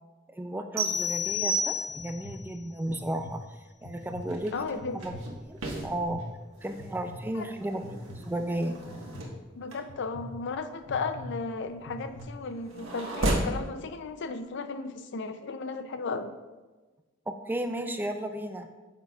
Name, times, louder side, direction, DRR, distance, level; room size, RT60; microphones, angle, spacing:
voice 1, 0.3-4.5 4.9-6.3 6.6-8.7 17.3-18.7, right 1 dB, 10° right, 7 dB, 0.4 m, -34 dB
sound 1, 0.8-2.3, left 1 dB, 30° right, 1.3 m, -29 dB
sound 2, 1.0-1.3 1.9-2.3 2.9-3.3 3.8-4.3 4.8-5.2 5.8-6.2 6.8-7.2 7.8-8.2 8.9-9.2 9.9-10.2 10.9-11.2 11.8-12.2, left 1 dB, 35° left, 0.9 m, -44 dB
sound 3, 4.0-13.6, right 1 dB, 75° right, 1.4 m, -36 dB
voice 2, 4.5-5.0 9.6-16.3, left 4 dB, 60° left, 10 dB, 0.5 m, -35 dB
9.2 x 6.6 x 2.4 m, 1.2 s
head